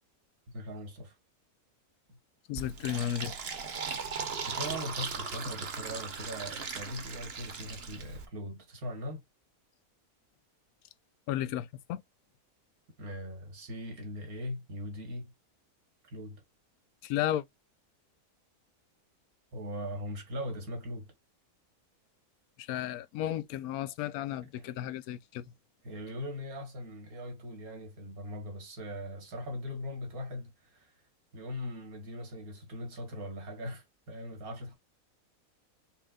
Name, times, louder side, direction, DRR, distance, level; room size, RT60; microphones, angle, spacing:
voice 1, 0.5-1.1 2.1-2.2 4.5-9.2 13.0-15.3 16.1-16.4 19.5-21.1 24.6-24.7 25.8-30.9 31.3-34.8, equal, 80° right, 2.2 m, -40 dB
voice 2, 2.5-3.3 11.3-12.0 17.0-17.4 22.6-25.5, left 12 dB, 85° left, 1.1 m, -33 dB
Fill (with liquid), 2.6-8.3, right 5 dB, 50° right, 1.1 m, -38 dB
4.4 x 3.7 x 2.4 m
omnidirectional pair, 1.5 m